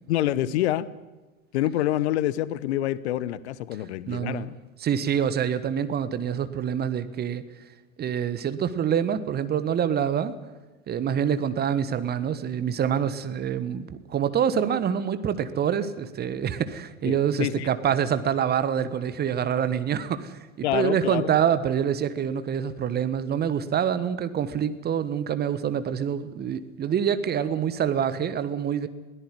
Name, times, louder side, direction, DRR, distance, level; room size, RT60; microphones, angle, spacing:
voice 1, 0.1-0.9 1.5-4.6 17.0-17.7 20.6-21.3, left 13 dB, 50° left, 18 dB, 1.1 m, -27 dB
voice 2, 4.1-4.5 4.8-7.4 8.0-10.3 10.9-28.9, right 8 dB, 25° right, 13 dB, 1.4 m, -26 dB
21.5 x 17.0 x 9.5 m, 1.2 s
figure-of-eight pair, 90°, 41 cm